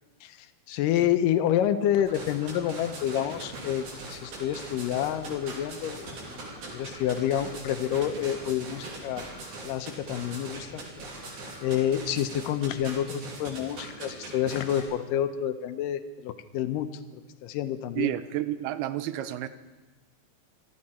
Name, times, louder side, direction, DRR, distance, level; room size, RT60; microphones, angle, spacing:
voice 1, 0.2-6.4 6.7-9.3 9.6-10.8 11.2-11.3 11.6-16.9 17.4-18.1, left 10 dB, 80° left, 10 dB, 2.0 m, -28 dB
sound 1, 2.0-12.8, equal, 20° right, 1.4 m, -49 dB
sound 2, 2.1-14.8, right 3 dB, 65° right, 4.6 m, -41 dB
voice 2, 18.0-19.5, right 14 dB, 80° right, 12 dB, 2.6 m, -30 dB
24.5 x 14.0 x 4.3 m, 1.2 s
omnidirectional pair, 4.6 m